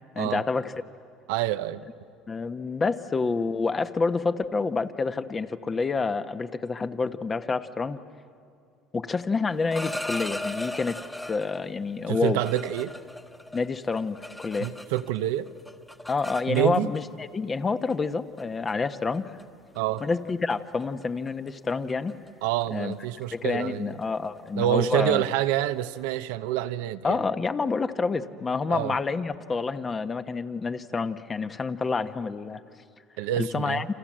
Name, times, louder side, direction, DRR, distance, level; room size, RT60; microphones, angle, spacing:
voice 1, 0.1-0.7 2.3-8.0 8.9-11.0 11.3-12.4 13.5-14.7 16.1-19.4 20.0-22.1 22.7-22.9 23.3-25.2 27.0-32.6 33.4-33.9, left 4 dB, 25° left, 10 dB, 1.2 m, -28 dB
voice 2, 1.3-1.8 12.1-12.9 14.6-15.5 16.5-16.9 19.7-20.0 22.4-24.0 24.5-27.2 28.7-29.0 33.2-33.8, right 13 dB, 85° right, 10 dB, 0.8 m, -27 dB
sound 1, 9.5-11.6 12.1-15.2 15.5-17.0 17.9-18.0 18.4-18.7 19.1-19.4 19.7-20.0 20.3-20.5 20.8-26.2, left 1 dB, 10° left, 1.5 m, -38 dB
30.0 x 26.5 x 7.6 m, 2.4 s
supercardioid pair, 90°, 0 cm